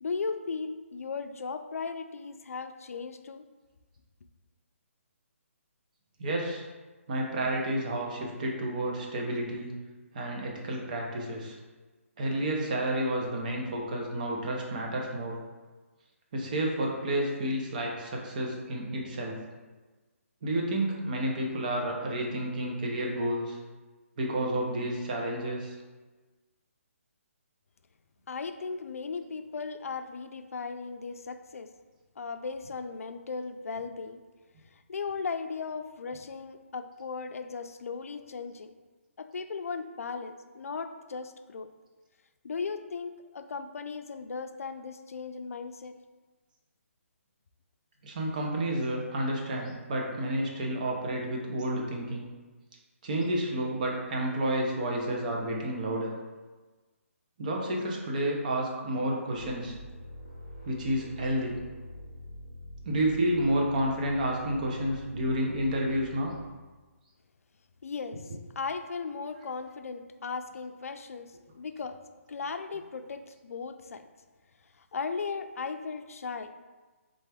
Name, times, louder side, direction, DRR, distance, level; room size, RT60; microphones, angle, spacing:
voice 1, 0.0-3.5 28.3-31.7 32.2-34.2 34.7-38.7 39.2-41.7 42.4-46.0 67.8-72.0 72.3-74.1 74.8-76.5, left 5 dB, 80° left, 8 dB, 0.4 m, -37 dB
voice 2, 6.2-6.6 7.1-9.7 10.1-11.6 12.2-15.4 16.3-19.4 20.4-23.6 24.2-25.7 48.0-52.3 53.0-56.1 57.4-59.7 60.6-61.5 62.8-66.3 68.1-68.2, right 1 dB, 35° right, 0 dB, 0.7 m, -30 dB
sound 1, 59.3-66.8, left 1 dB, 5° right, 1.0 m, -45 dB
3.8 x 3.4 x 3.4 m, 1.3 s
hypercardioid pair, 170°, 8 cm